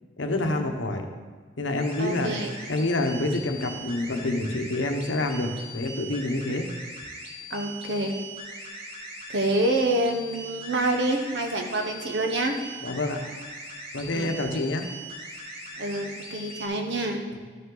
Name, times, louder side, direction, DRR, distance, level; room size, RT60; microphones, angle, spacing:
voice 1, 0.2-1.1 1.6-2.3 2.7-6.7 12.8-13.2 13.9-14.9 17.3-17.4, left 2 dB, 80° left, 4 dB, 1.0 m, -27 dB
sound 1, 1.7-16.7, right 1 dB, 30° right, 1.5 m, -40 dB
voice 2, 2.0-2.5 7.5-8.2 9.3-12.6 14.1-14.3 15.8-17.2, right 1 dB, 65° right, 3 dB, 1.0 m, -27 dB
12.5 x 5.6 x 3.9 m, 1.5 s
head